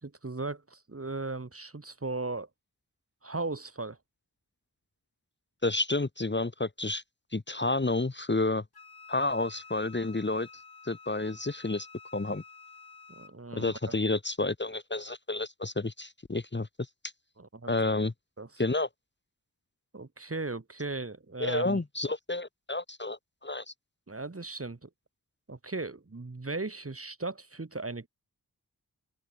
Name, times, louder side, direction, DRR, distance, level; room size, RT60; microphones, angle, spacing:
voice 1, 0.0-2.5 3.2-4.0 13.1-13.9 17.4-17.7 18.4-18.5 19.9-21.8 24.1-24.9 25.5-28.1, right 3 dB, 35° right, 1.8 m, -37 dB
voice 2, 5.6-7.0 7.3-8.6 9.1-10.5 10.9-11.9 12.1-12.4 13.6-16.7 17.7-18.1 18.6-18.9 21.4-23.6, left 2 dB, 30° left, 1.2 m, -30 dB
Wind instrument woodwind instrument, 8.7-13.4, left 5 dB, 70° left, 2.1 m, -51 dB
open air
wide cardioid pair, 65°, 38 cm